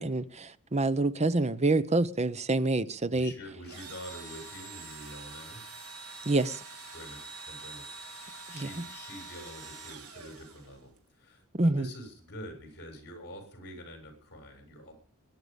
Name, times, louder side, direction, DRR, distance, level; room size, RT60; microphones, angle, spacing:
voice 1, 0.0-3.3 6.3-6.6 8.5-8.7 11.5-11.9, right 2 dB, 30° right, 0.9 m, -27 dB
voice 2, 3.1-5.6 6.9-7.2 7.5-14.9, equal, 50° left, 7.4 m, -46 dB
Engine / Drill, 3.6-11.0, right 3 dB, 80° right, 4.0 m, -45 dB
21.5 x 11.0 x 5.4 m
head